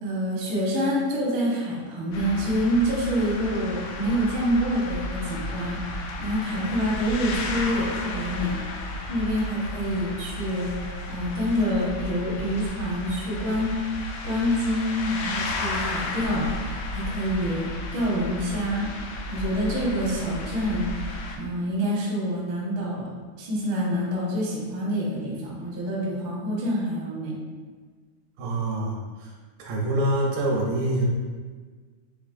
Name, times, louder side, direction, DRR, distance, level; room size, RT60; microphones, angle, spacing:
voice 1, 0.0-13.8 14.2-23.1 23.4-27.3, equal, 65° right, -4 dB, 1.2 m, -27 dB
sound 1, 2.1-21.4, left 2 dB, 85° left, 2.4 m, -33 dB
voice 2, 28.4-29.3 29.6-31.1, right 1 dB, 80° right, -3 dB, 2.5 m, -26 dB
5.9 x 3.5 x 2.5 m, 1.5 s
omnidirectional pair, 3.9 m